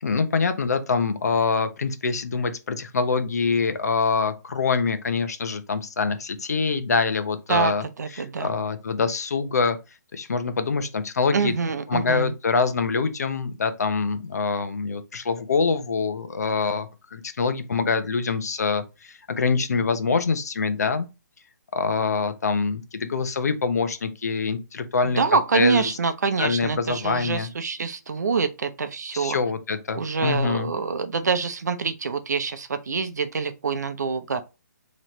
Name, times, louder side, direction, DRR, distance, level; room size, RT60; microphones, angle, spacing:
voice 1, 0.0-7.8 8.1-9.8 10.1-11.5 11.9-21.1 21.7-25.2 25.5-25.8 26.4-27.5 29.1-30.7, left 4 dB, 60° left, 0.8 m, -25 dB
voice 2, 7.5-8.5 11.3-12.3 25.2-29.4 29.9-34.4, right 5 dB, 65° right, 0.7 m, -25 dB
4.2 x 3.1 x 3.0 m
hypercardioid pair, 175°, 10 cm